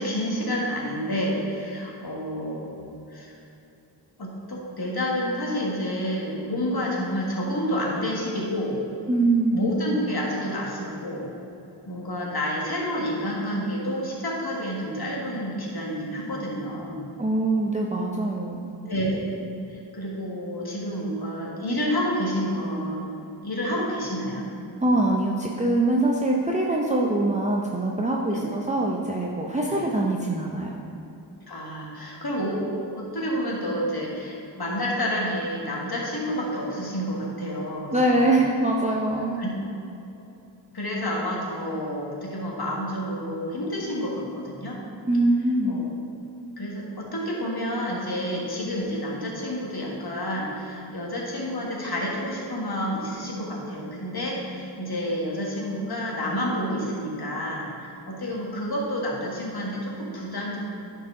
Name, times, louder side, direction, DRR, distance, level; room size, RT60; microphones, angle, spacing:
voice 1, 0.0-2.8 3.1-3.4 4.2-8.8 9.5-11.3 11.9-17.1 18.9-19.2 19.7-23.0 23.4-24.5 28.3-28.4 29.6-29.8 31.5-38.3 39.4-39.5 40.7-44.8 45.6-45.8 46.6-60.6, equal, 55° left, -3 dB, 1.7 m, -29 dB
voice 2, 9.1-9.7 17.2-18.8 24.8-30.8 37.9-39.4 45.1-45.8, right 2 dB, 15° right, -2 dB, 0.6 m, -23 dB
9.7 x 4.7 x 3.7 m, 2.8 s
wide cardioid pair, 55°, 45 cm